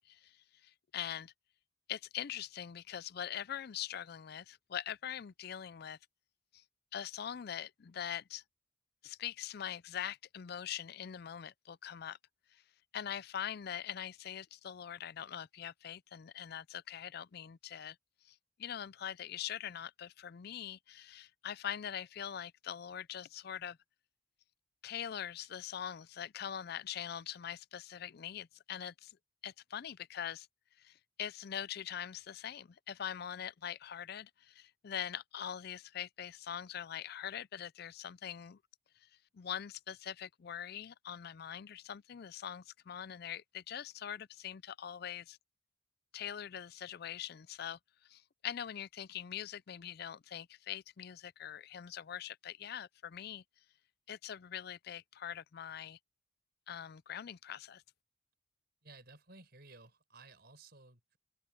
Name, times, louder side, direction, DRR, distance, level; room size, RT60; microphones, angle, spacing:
voice 1, 0.0-1.3 1.9-6.0 6.5-6.6 6.9-8.4 9.0-12.2 12.5-12.6 12.9-18.0 18.2-23.8 24.8-29.2 29.4-30.5 30.8-38.6 39.0-39.1 39.3-45.4 46.1-53.4 54.1-56.0 56.7-57.8, left 9 dB, 50° left, 0.4 m, -43 dB
voice 2, 58.8-61.2, right 3 dB, 55° right, 5.0 m, -57 dB
open air
head